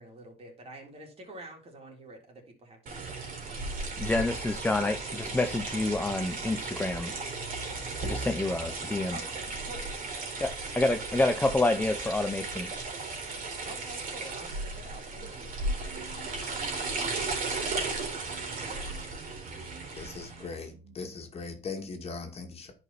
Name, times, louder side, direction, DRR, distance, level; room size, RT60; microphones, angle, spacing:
voice 1, 0.0-3.2 9.1-9.9 13.6-15.6, right 2 dB, 35° right, 4.0 m, -47 dB
sound 1, 2.9-20.5, right 3 dB, 55° right, 4.0 m, -35 dB
voice 2, 4.0-7.1 8.0-9.2 10.4-12.7, left 2 dB, 10° left, 0.8 m, -28 dB
sound 2, 15.6-21.0, right 5 dB, 70° right, 2.3 m, -52 dB
voice 3, 20.0-22.7, left 4 dB, 35° left, 2.3 m, -39 dB
10.5 x 5.4 x 4.3 m
cardioid pair, 110°, 17 cm